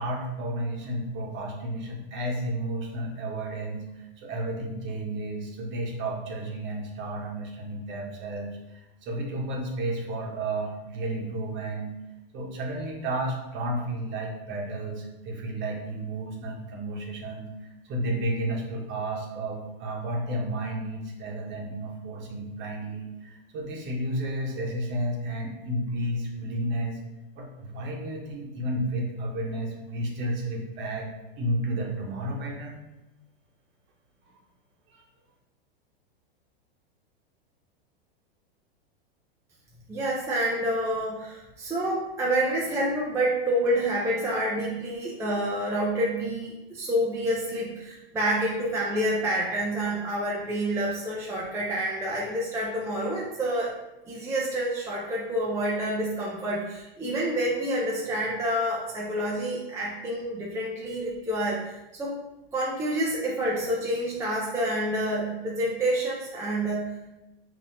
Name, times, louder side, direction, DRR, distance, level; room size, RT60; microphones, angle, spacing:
voice 1, 0.0-11.9 12.3-17.5 17.8-27.0 27.3-31.1 31.4-32.8 34.9-35.0, right 1 dB, 35° right, 0 dB, 1.0 m, -32 dB
voice 2, 39.9-53.7 54.1-62.2 62.5-67.0, right 1 dB, 10° right, -5 dB, 0.5 m, -28 dB
5.5 x 2.7 x 2.7 m, 0.99 s
hypercardioid pair, 120°, 31 cm